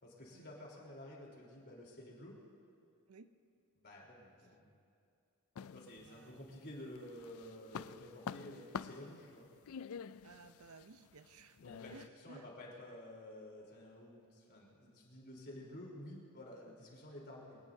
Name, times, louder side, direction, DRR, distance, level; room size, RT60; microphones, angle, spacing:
voice 1, 0.0-2.4 3.8-4.7 5.7-9.5 11.6-17.6, left 1 dB, 45° left, -3 dB, 3.8 m, -51 dB
sound 1, 5.6-6.6 7.0-12.1, left 7 dB, 65° left, 0.4 m, -47 dB
voice 2, 6.0-6.4 10.2-11.6 11.9-12.5, right 4 dB, 80° right, 11 dB, 0.7 m, -58 dB
24.5 x 18.0 x 2.8 m, 2.4 s
head